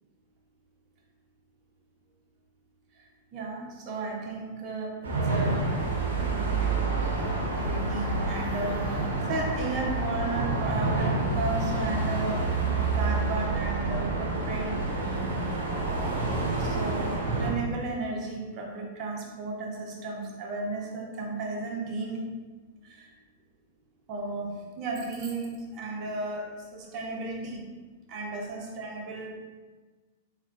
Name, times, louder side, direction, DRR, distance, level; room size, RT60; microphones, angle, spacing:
voice 1, 3.3-4.9 5.3-5.7 6.6-6.8 7.6-12.5 12.8-15.1 16.6-22.3 22.8-23.1 24.1-27.7 28.1-29.3, right 3 dB, 40° right, -1 dB, 0.8 m, -34 dB
sound 1, 5.0-17.5, right 3 dB, 75° right, 1.0 m, -28 dB
4.2 x 3.5 x 2.2 m, 1.3 s
figure-of-eight pair, 100°, 0 cm